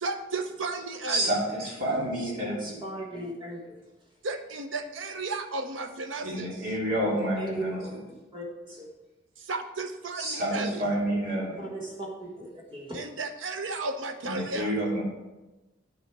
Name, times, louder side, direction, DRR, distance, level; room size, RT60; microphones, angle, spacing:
voice 1, 0.0-1.3 4.2-6.5 9.5-10.9 12.9-14.7, right 3 dB, 80° right, 7 dB, 0.9 m, -34 dB
voice 2, 1.1-2.8 6.2-8.0 10.2-11.7 14.2-15.0, right 1 dB, 50° right, -5 dB, 2.7 m, -29 dB
voice 3, 2.6-3.6 7.4-7.9 8.3-8.8 11.6-13.0, right 2 dB, 25° right, -1 dB, 1.5 m, -37 dB
9.5 x 6.4 x 4.7 m, 1.1 s
head